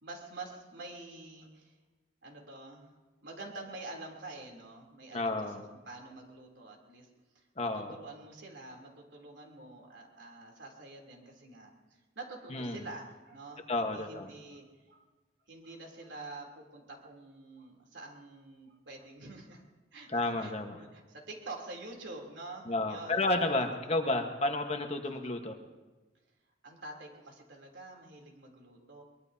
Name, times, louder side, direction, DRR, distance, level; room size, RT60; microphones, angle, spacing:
voice 1, 0.0-1.8 2.2-2.9 3.2-5.5 5.8-7.1 7.3-15.0 15.5-19.6 19.9-24.0 26.6-29.0, right 2 dB, 75° right, 0 dB, 3.3 m, -47 dB
voice 2, 5.1-5.6 7.6-8.0 12.5-12.9 13.7-14.3 20.1-20.8 22.7-25.6, left 2 dB, 35° left, 4 dB, 1.3 m, -31 dB
23.5 x 22.0 x 2.8 m, 1.2 s
head